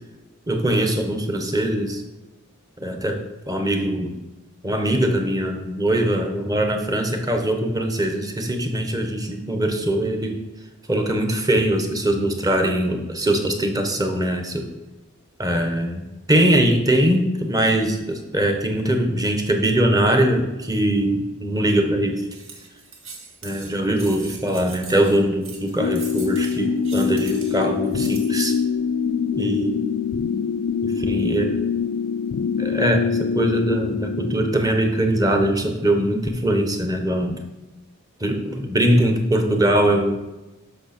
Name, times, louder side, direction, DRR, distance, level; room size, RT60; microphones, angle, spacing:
voice 1, 0.5-2.0 2.8-4.2 4.6-10.4 10.9-14.7 15.4-22.2 23.4-28.6 29.4-29.8 30.8-31.5 32.6-37.4 38.2-40.2, right 1 dB, 15° right, 4 dB, 1.2 m, -22 dB
sound 1, 22.3-28.3, right 4 dB, 70° right, 2.0 m, -41 dB
sound 2, 25.8-34.5, left 6 dB, 75° left, 0.4 m, -24 dB
12.5 x 5.7 x 4.3 m, 1.1 s
head